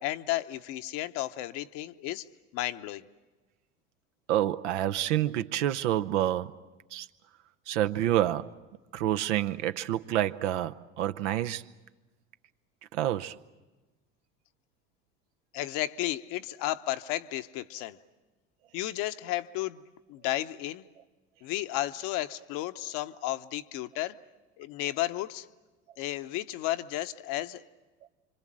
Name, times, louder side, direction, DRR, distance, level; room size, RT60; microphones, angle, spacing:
voice 1, 0.0-2.3 2.5-3.1 15.5-18.0 18.7-20.8 21.4-24.2 24.6-25.5 26.0-27.6, left 15 dB, 65° left, 0.9 m, -33 dB
voice 2, 4.3-6.5 6.9-7.1 7.7-8.5 8.9-11.6 12.9-13.3, right 12 dB, 80° right, 0.8 m, -28 dB
26.5 x 25.5 x 7.6 m
hypercardioid pair, 75°, 35 cm